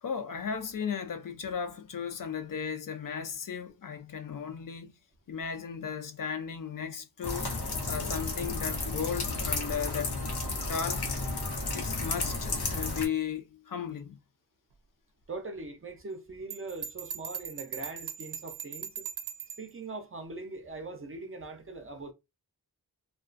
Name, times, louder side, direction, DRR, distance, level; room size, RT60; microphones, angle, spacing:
voice 1, 0.0-5.0 5.3-7.5 7.9-10.2 10.7-11.1 11.7-14.2, left 7 dB, 60° left, 0.5 m, -35 dB
sound 1, 7.2-13.1, left 3 dB, 85° left, 0.8 m, -32 dB
voice 2, 15.3-19.1 19.6-22.1, right 2 dB, 35° right, 0.5 m, -41 dB
Bell, 16.5-19.7, right 8 dB, 85° right, 0.5 m, -40 dB
2.3 x 2.2 x 2.4 m
wide cardioid pair, 80°, 38 cm